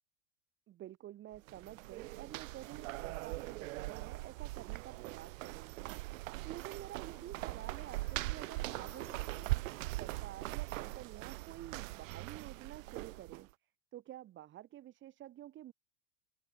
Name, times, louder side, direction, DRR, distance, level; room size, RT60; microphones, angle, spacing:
voice 1, 0.7-9.5 10.0-13.5 13.9-15.7, right 13 dB, 30° right, 5.6 m, -50 dB
sound 1, 1.3-13.5, right 20 dB, 80° right, 0.6 m, -41 dB
sound 2, 7.0-11.1, left 17 dB, 75° left, 6.1 m, -61 dB
supercardioid pair, 160°, 39 cm